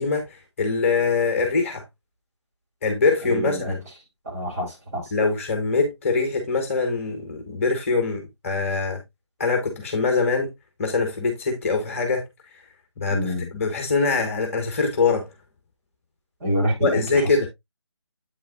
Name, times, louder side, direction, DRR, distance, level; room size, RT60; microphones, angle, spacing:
voice 1, 0.0-1.8 2.8-3.8 5.1-9.0 9.4-10.5 10.8-12.2 13.0-15.3 16.8-17.5, left 4 dB, 30° left, 1.7 m, -23 dB
voice 2, 3.2-3.7 4.3-5.1 13.1-13.5 16.4-17.2, equal, 30° right, 5.0 m, -26 dB
8.6 x 7.2 x 2.4 m
figure-of-eight pair, 155°, 15 cm